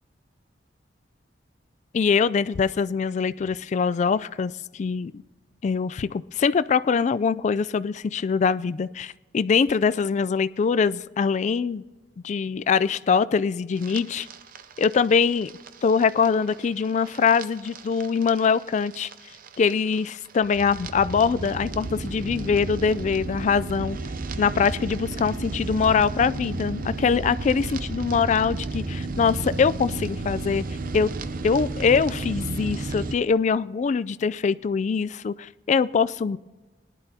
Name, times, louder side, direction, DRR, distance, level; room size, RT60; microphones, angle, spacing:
voice 1, 1.9-5.1 5.6-11.8 12.2-14.3 14.8-15.5 15.8-19.1 19.6-24.0 24.4-30.7 30.9-31.1 31.4-36.4, left 5 dB, 40° left, 16 dB, 0.3 m, -23 dB
sound 1, 13.8-33.1, right 3 dB, 50° right, 0.6 m, -33 dB
19.0 x 11.0 x 2.8 m, 1.2 s
head